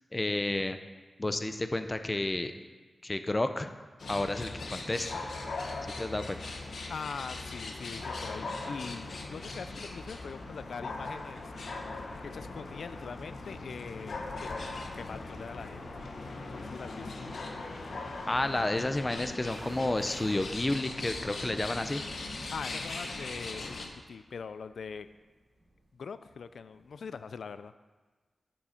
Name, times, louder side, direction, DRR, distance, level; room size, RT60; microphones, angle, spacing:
voice 1, 0.1-0.8 1.2-2.5 3.0-3.7 4.1-5.2 5.8-6.4 18.3-22.0, left 2 dB, 25° left, 9 dB, 0.6 m, -31 dB
sound 1, 4.0-23.9, left 3 dB, 75° left, 1.1 m, -40 dB
voice 2, 6.9-11.5 12.3-15.9 16.4-17.2 22.5-25.1 25.9-27.7, left 5 dB, 90° left, 13 dB, 0.3 m, -42 dB
sound 2, 19.4-27.1 27.3-27.4, right 1 dB, 35° right, 3.4 m, -55 dB
11.5 x 7.3 x 4.4 m, 1.3 s
wide cardioid pair, 115°, 0 cm